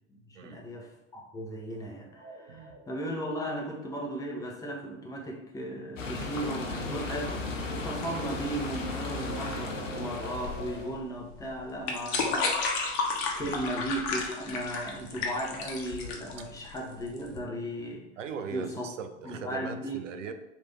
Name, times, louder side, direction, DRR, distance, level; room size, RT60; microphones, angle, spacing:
voice 1, 0.1-12.7 13.3-18.1 18.5-18.9 19.2-20.0, right 1 dB, 10° left, -1 dB, 0.7 m, -36 dB
sound 1, 2.0-6.1 6.4-11.0, right 4 dB, 40° right, 0.8 m, -49 dB
voice 2, 2.5-2.8 13.4-13.6 18.2-20.3, right 6 dB, 75° right, 9 dB, 0.5 m, -39 dB
sound 2, 5.9-10.9, left 3 dB, 80° left, 0.7 m, -35 dB
sound 3, 10.3-17.4, left 4 dB, 55° left, 0.8 m, -32 dB
3.2 x 2.6 x 3.9 m, 0.92 s
figure-of-eight pair, 80°, 38 cm